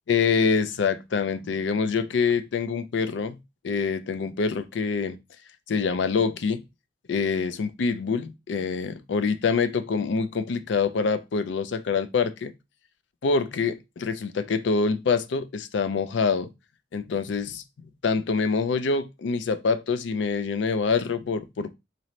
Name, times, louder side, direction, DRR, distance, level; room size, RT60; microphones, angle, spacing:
voice 1, 0.1-3.4 3.6-5.2 5.7-6.6 7.1-12.5 13.2-16.5 16.9-17.6 18.0-21.7, left 5 dB, 80° left, 0.4 m, -25 dB
4.0 x 2.7 x 3.1 m
head